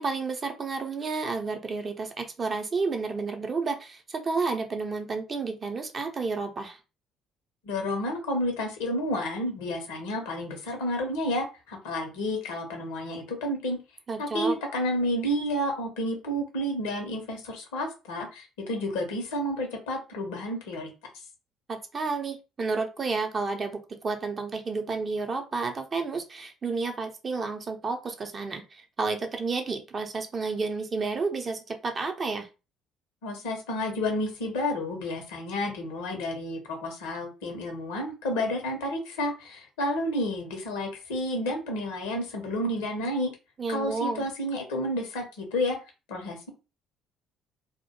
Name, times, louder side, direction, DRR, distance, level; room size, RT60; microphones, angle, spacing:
voice 1, 0.0-6.8 14.1-14.5 21.7-32.5 43.6-44.3, right 4 dB, 35° right, 5 dB, 0.5 m, -31 dB
voice 2, 7.6-13.8 14.2-20.9 33.2-43.3 43.7-45.8 46.1-46.5, left 1 dB, 70° left, 3 dB, 0.6 m, -30 dB
2.1 x 2.1 x 2.9 m, 0.30 s
figure-of-eight pair, 50°, 0 cm